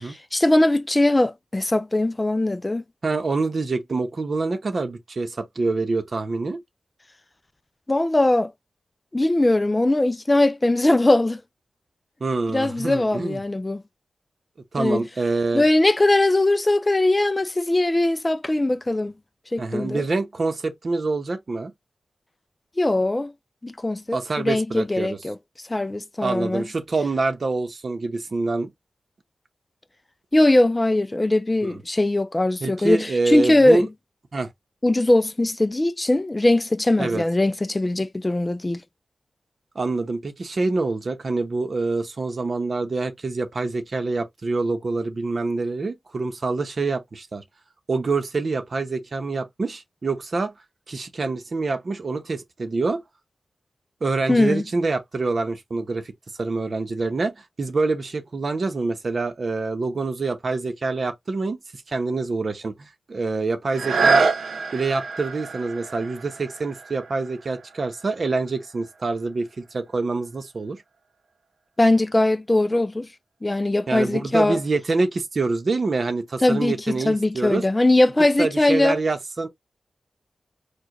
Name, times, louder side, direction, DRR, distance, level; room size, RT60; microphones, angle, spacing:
voice 1, 0.3-2.8 7.9-8.5 9.1-11.4 12.5-13.8 14.8-15.0 15.5-19.1 19.5-20.0 22.8-23.3 23.6-25.4 25.7-26.6 30.3-33.9 34.8-38.8 54.3-54.6 71.8-73.1 73.4-74.6 76.4-79.0, left 2 dB, 15° left, 0.3 m, -20 dB
voice 2, 3.0-6.6 12.2-13.4 14.7-15.6 19.6-21.7 24.1-25.2 26.2-28.7 31.7-31.8 32.6-33.9 34.3-34.5 37.0-37.2 39.7-47.4 47.9-50.5 50.9-53.0 54.0-56.1 56.4-64.3 64.7-70.8 73.9-77.6 78.4-79.5, right 3 dB, 45° right, 0.8 m, -26 dB
sound 1, 63.7-69.3 69.9-70.0, right 4 dB, 75° right, 0.8 m, -27 dB
4.8 x 2.2 x 3.8 m
wide cardioid pair, 150°, 0 cm